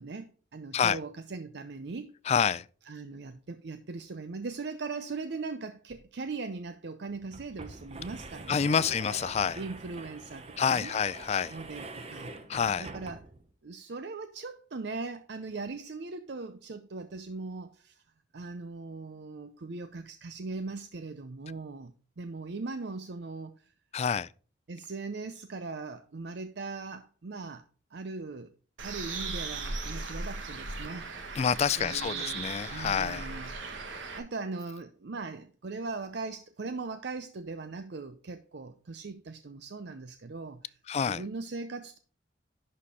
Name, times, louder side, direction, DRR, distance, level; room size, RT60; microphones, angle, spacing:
voice 1, 0.0-2.1 2.8-8.8 9.5-10.9 11.5-12.3 12.8-13.2 13.6-18.0 18.3-23.7 24.7-27.6 27.9-28.5 28.8-31.1 31.8-33.6 34.2-40.8 41.0-42.0, right 3 dB, 60° right, 0.6 m, -39 dB
voice 2, 2.3-2.6 8.5-9.6 10.6-11.5 12.5-12.9 23.9-24.3 31.4-33.3 40.9-41.2, left 7 dB, 35° left, 0.3 m, -28 dB
sound 1, 5.9-6.0 6.3-6.4 7.1-13.5, right 3 dB, 35° right, 0.9 m, -45 dB
Bird, 28.8-34.2, right 3 dB, 80° right, 1.3 m, -37 dB
11.0 x 4.3 x 4.8 m
head